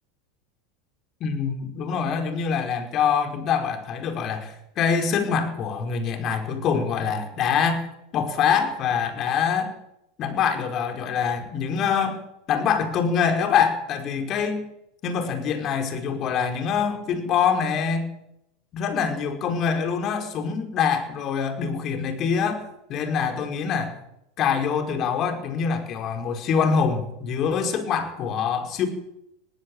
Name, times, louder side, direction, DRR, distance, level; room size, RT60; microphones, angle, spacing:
voice 1, 1.2-7.8 8.1-9.7 10.2-12.2 12.5-14.6 15.0-18.1 18.7-24.0 24.4-28.9, left 6 dB, 40° left, 6 dB, 5.2 m, -25 dB
19.5 x 17.5 x 9.0 m, 0.82 s
hypercardioid pair, 85°, 0 cm